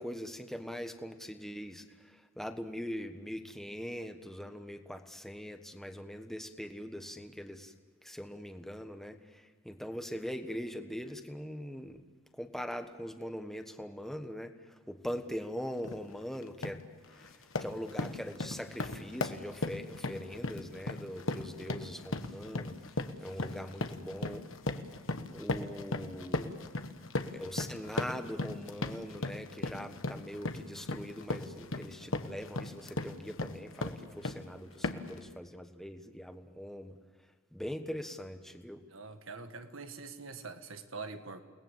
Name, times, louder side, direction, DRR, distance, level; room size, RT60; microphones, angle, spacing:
voice 1, 0.0-7.7 8.0-12.0 12.4-14.5 14.9-16.8 17.1-17.3 17.6-22.8 23.2-24.4 25.3-26.5 27.3-37.0 37.5-38.8, equal, ahead, 6 dB, 1.3 m, -42 dB
sound 1, 15.8-16.0 16.4-16.8 17.2-34.5 34.8-35.2, left 2 dB, 70° left, 1.3 m, -37 dB
voice 2, 38.9-41.4, right 4 dB, 75° right, 8 dB, 1.7 m, -44 dB
29.0 x 20.0 x 7.4 m, 1.4 s
head